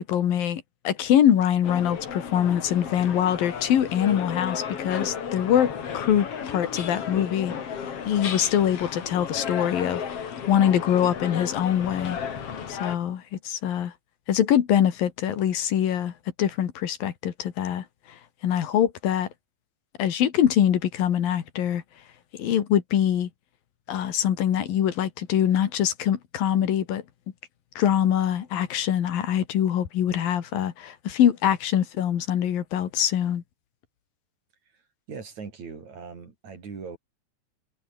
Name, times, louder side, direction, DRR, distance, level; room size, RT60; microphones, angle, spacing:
voice 1, 0.0-7.5 8.1-12.2 12.7-13.9 14.3-16.1 16.4-17.9 18.4-19.3 20.0-21.8 22.4-23.3 23.9-27.0 27.8-33.4, left 10 dB, 80° left, 3.8 m, -24 dB
sound 1, 1.6-13.0, left 7 dB, 45° left, 3.0 m, -34 dB
voice 2, 35.1-37.0, right 5 dB, 55° right, 5.3 m, -40 dB
omnidirectional pair, 4.0 m